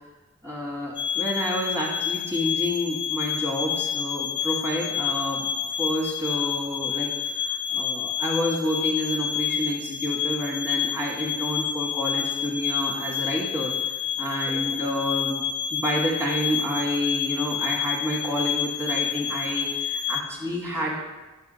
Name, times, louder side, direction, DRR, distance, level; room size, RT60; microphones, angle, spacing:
voice 1, 0.4-5.5 5.8-13.7 14.2-15.4 15.7-21.0, equal, 15° right, -3 dB, 1.4 m, -29 dB
sound 1, 1.0-20.2, left 9 dB, 25° left, 0.3 m, -29 dB
7.0 x 3.4 x 5.0 m, 1.1 s
head